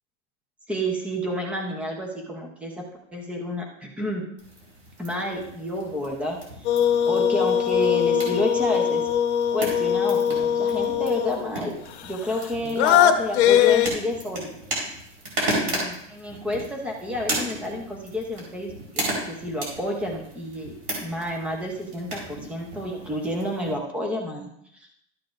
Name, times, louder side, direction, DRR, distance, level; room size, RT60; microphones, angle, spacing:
voice 1, 0.7-2.8 3.1-4.2 5.0-6.7 7.1-9.0 9.5-11.7 12.0-14.6 15.6-20.7 21.0-24.9, left 1 dB, 5° right, 1 dB, 0.7 m, -30 dB
sound 1, 4.4-23.7, right 1 dB, 40° right, 3.9 m, -35 dB
sound 2, 6.7-11.5 12.1-13.9, left 9 dB, 60° left, 0.9 m, -21 dB
12.5 x 8.2 x 2.5 m, 0.76 s
supercardioid pair, 175°, 37 cm